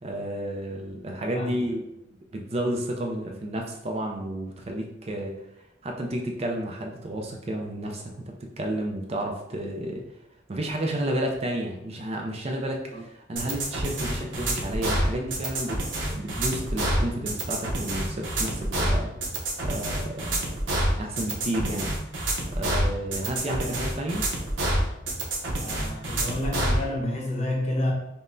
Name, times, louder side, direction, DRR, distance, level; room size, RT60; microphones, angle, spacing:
voice 1, 0.0-1.8 2.3-5.4 5.8-10.0 10.5-19.1 19.6-20.4 21.0-21.9 22.5-24.3, right 1 dB, 35° right, 1 dB, 0.4 m, -31 dB
sound 1, 13.4-26.8, right 1 dB, 75° right, 0.7 m, -27 dB
voice 2, 25.6-27.9, left 1 dB, 35° left, -1 dB, 0.7 m, -29 dB
5.3 x 2.1 x 2.6 m, 0.86 s
head